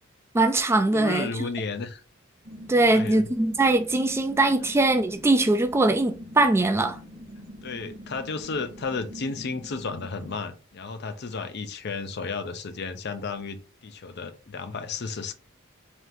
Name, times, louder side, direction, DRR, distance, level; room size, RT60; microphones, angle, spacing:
voice 1, 0.3-1.3 2.7-7.0, right 2 dB, 10° right, 0.3 m, -21 dB
voice 2, 0.9-2.0 2.8-3.3 7.6-15.3, left 4 dB, 55° left, 0.5 m, -33 dB
sound 1, 2.4-10.4, equal, 40° right, 0.9 m, -44 dB
3.2 x 3.1 x 3.9 m
head